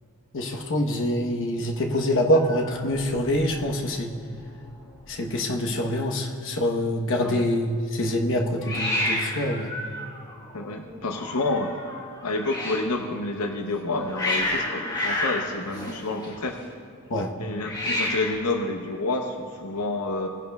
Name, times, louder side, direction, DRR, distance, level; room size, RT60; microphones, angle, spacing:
voice 1, 0.3-4.1 5.1-9.7 17.1-17.3, left 1 dB, 60° left, 1 dB, 1.0 m, -25 dB
Hiss, 2.3-3.7 3.9-4.4 4.7-4.8 4.9-5.6 8.6-12.9 13.7-16.6 17.6-18.5, left 1 dB, 20° left, 1.5 m, -31 dB
voice 2, 10.5-11.8 12.2-16.6 17.4-20.3, left 2 dB, 85° left, 3 dB, 0.8 m, -29 dB
19.0 x 10.5 x 2.3 m, 2.5 s
head